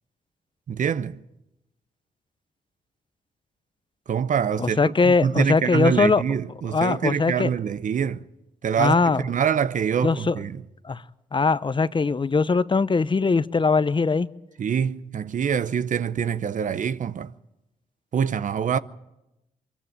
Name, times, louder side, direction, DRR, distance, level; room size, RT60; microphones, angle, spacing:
voice 1, 0.7-1.2 4.1-8.2 8.6-10.6 14.6-17.3 18.1-18.8, right 7 dB, 60° right, 0.8 m, -25 dB
voice 2, 4.6-6.2 6.7-7.5 8.8-9.2 10.0-10.4 10.8-11.0 11.3-14.3, left 4 dB, 35° left, 0.8 m, -21 dB
22.5 x 14.5 x 8.8 m
supercardioid pair, 45°, 15 cm